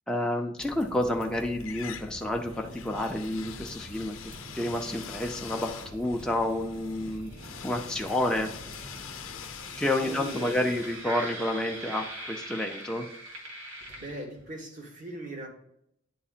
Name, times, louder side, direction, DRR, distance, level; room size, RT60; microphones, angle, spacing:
voice 1, 0.1-4.2 4.5-7.3 7.6-8.5 9.8-13.1, left 1 dB, 5° left, 1 dB, 0.5 m, -29 dB
sound 1, 0.6-14.5, right 1 dB, 75° right, 1.8 m, -43 dB
sound 2, 0.7-1.3 1.6-12.5, left 8 dB, 85° left, 0.6 m, -45 dB
voice 2, 9.9-10.8 14.0-15.5, right 1 dB, 40° right, 1 dB, 1.4 m, -40 dB
10.0 x 4.2 x 2.4 m, 0.77 s
head